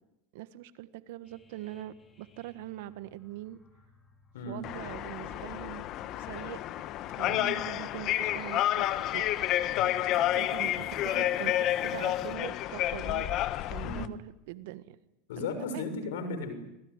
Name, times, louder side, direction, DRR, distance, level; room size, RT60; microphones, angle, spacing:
voice 1, 0.3-3.6 4.4-5.8 6.2-6.6 7.2-9.2 10.3-13.3 13.6-15.0 15.4-15.9, right 15 dB, 70° right, 14 dB, 1.5 m, -42 dB
sound 1, 1.2-12.3, left 3 dB, 20° left, 5.5 m, -52 dB
sound 2, 4.6-14.1, left 13 dB, 45° left, 1.3 m, -30 dB
voice 2, 13.8-14.1 15.3-16.5, left 3 dB, 80° left, 9 dB, 6.3 m, -36 dB
25.5 x 19.5 x 9.9 m, 0.90 s
supercardioid pair, 120°, 0 cm